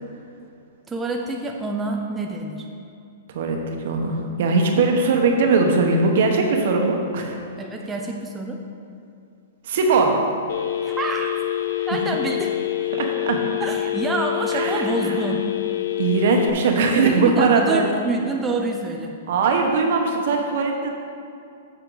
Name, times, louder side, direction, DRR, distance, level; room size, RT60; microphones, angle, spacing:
voice 1, 0.9-2.7 7.6-8.6 10.8-11.3 11.9-12.5 13.6-15.4 17.0-19.1, right 3 dB, 10° right, 0 dB, 0.6 m, -27 dB
voice 2, 3.3-7.3 9.6-10.1 11.8-12.0 13.0-13.4 14.5-15.2 16.0-17.8 19.3-20.9, right 4 dB, 65° right, 2 dB, 1.2 m, -20 dB
Telephone, 10.5-16.5, left 13 dB, 75° left, 0.6 m, -26 dB
8.0 x 7.2 x 4.0 m, 2.5 s
hypercardioid pair, 140°, 0 cm